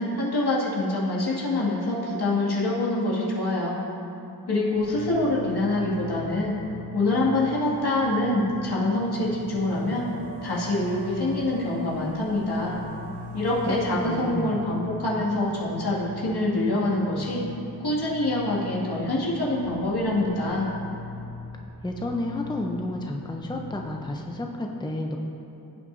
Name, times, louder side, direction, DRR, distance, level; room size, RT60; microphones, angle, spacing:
voice 1, 0.0-3.8 4.5-6.5 6.9-10.0 10.4-12.8 13.3-17.4 17.8-20.7, left 2 dB, 70° left, -6 dB, 2.3 m, -25 dB
sound 1, 4.7-24.1, left 1 dB, 70° right, 1.2 m, -41 dB
voice 2, 13.7-14.6 21.8-25.2, left 1 dB, 10° left, 1 dB, 0.7 m, -31 dB
16.5 x 6.4 x 2.7 m, 2.7 s
wide cardioid pair, 65°, 40 cm